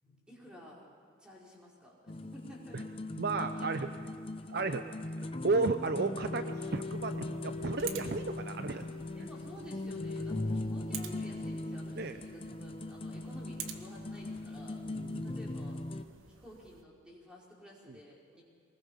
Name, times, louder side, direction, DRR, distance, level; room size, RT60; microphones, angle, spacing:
voice 1, 0.0-0.9 1.2-2.9 3.4-3.7 4.4-4.5 4.7-4.8 8.8-14.8 15.2-15.8 16.3-18.4, left 1 dB, 5° right, -4 dB, 4.6 m, -52 dB
sound 1, 2.1-16.0, left 2 dB, 30° left, 0.7 m, -39 dB
voice 2, 3.2-3.9 4.5-4.8 5.4-8.8 12.0-12.2 14.9-15.3, right 3 dB, 50° right, 9 dB, 0.7 m, -33 dB
sound 2, 6.5-16.8, right 8 dB, 85° right, 1.4 m, -50 dB
23.5 x 20.0 x 5.6 m, 2.3 s
head